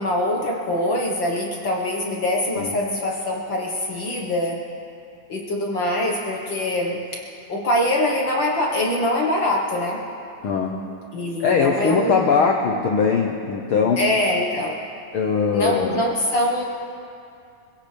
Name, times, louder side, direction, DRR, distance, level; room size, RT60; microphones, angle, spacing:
voice 1, 0.0-4.6 5.3-7.0 7.5-10.0 11.1-12.3 14.0-14.8 15.5-16.6, left 1 dB, 50° left, -1 dB, 1.6 m, -23 dB
voice 2, 10.4-10.8 11.4-14.1 15.1-16.0, left 5 dB, 80° left, 2 dB, 1.2 m, -21 dB
25.5 x 16.5 x 3.4 m, 2.6 s
omnidirectional pair, 3.5 m